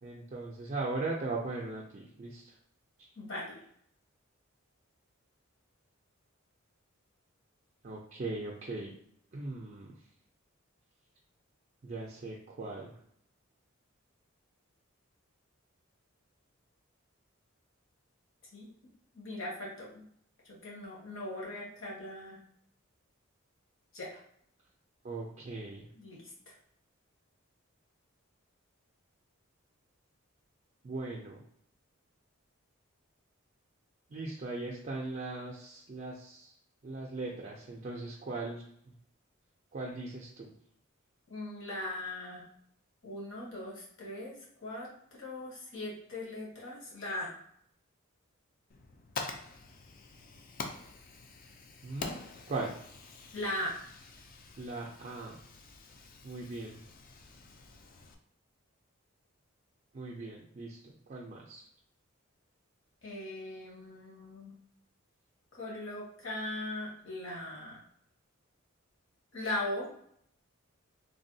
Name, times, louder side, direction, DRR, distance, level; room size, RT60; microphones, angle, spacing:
voice 1, 0.0-2.5 3.0-3.1 7.8-8.9 9.3-10.0 11.8-12.9 25.0-25.9 30.8-31.4 34.1-36.6 36.8-38.9 39.7-40.5 51.8-52.2 52.5-52.8 54.6-55.4 56.2-56.8 59.9-61.7, right 3 dB, 35° right, -3 dB, 0.4 m, -39 dB
voice 2, 3.2-3.6 18.5-18.7 19.1-20.0 20.4-22.4 23.9-24.2 25.9-26.3 41.3-42.5 43.0-44.3 44.6-44.9 45.2-47.3 53.3-53.7 63.0-64.5 65.5-67.8 69.3-69.9, left 1 dB, 65° left, -5 dB, 1.1 m, -39 dB
Fire, 48.7-58.1, left 4 dB, 40° left, 0.3 m, -46 dB
3.3 x 2.2 x 2.6 m, 0.68 s
head